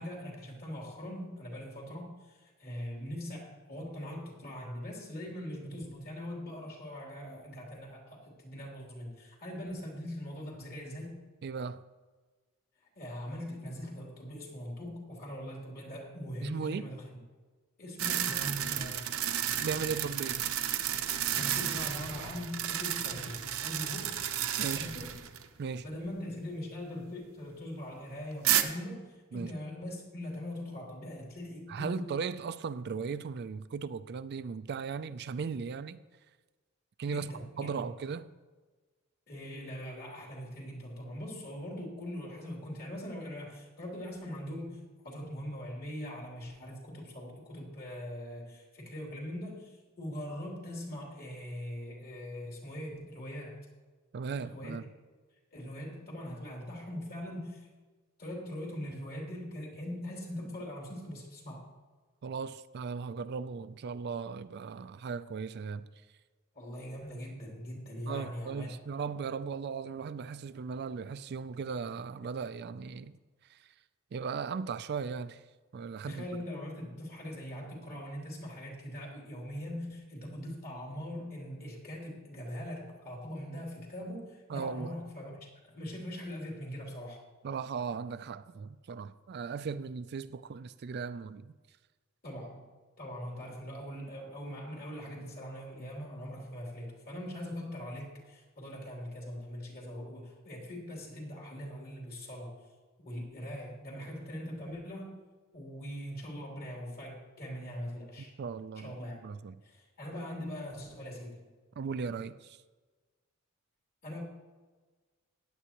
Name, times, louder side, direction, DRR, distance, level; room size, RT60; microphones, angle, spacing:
voice 1, 0.0-11.2 12.9-17.1 17.8-19.2 21.4-24.2 24.7-25.1 25.8-32.2 37.1-37.9 39.3-53.7 54.4-54.8 55.5-57.7 58.2-61.7 66.5-68.8 76.0-87.2 92.2-92.6 93.0-102.7 103.0-105.1 105.5-108.3 108.8-109.2 109.6-111.5 114.0-114.2, equal, 50° left, 3.2 m, -41 dB
voice 2, 11.4-11.8 16.4-16.9 19.6-20.5 24.6-24.9 25.6-25.8 29.3-29.5 31.7-36.0 37.0-38.3 54.1-54.8 62.2-65.9 68.1-73.1 73.5-73.7 74.1-75.4 75.7-76.2 84.5-84.9 87.4-91.5 108.4-108.9 109.2-109.6 111.8-112.6, right 5 dB, 55° right, 0.4 m, -37 dB
sound 1, 18.0-25.5 25.8-25.9 28.4-28.6, right 10 dB, 85° right, 0.8 m, -32 dB
15.0 x 10.0 x 3.0 m
head